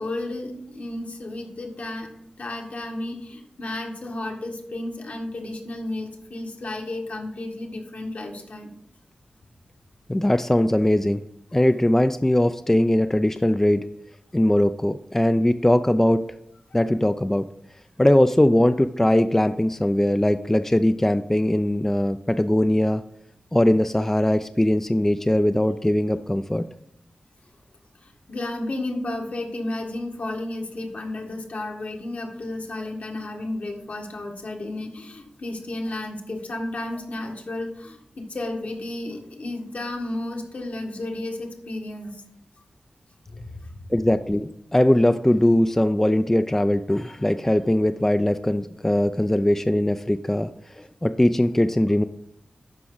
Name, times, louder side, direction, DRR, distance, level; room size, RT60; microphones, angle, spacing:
voice 1, 0.0-2.1 2.4-8.7 28.0-42.2 43.3-43.9, left 2 dB, 65° left, 1 dB, 1.8 m, -32 dB
voice 2, 10.1-11.2 11.5-13.9 14.3-16.2 16.7-17.5 18.0-23.0 23.5-26.7 43.9-50.5 50.8-52.0, left 1 dB, 15° left, 10 dB, 0.4 m, -20 dB
12.0 x 4.9 x 3.9 m, 0.74 s
cardioid pair, 55°, 3 cm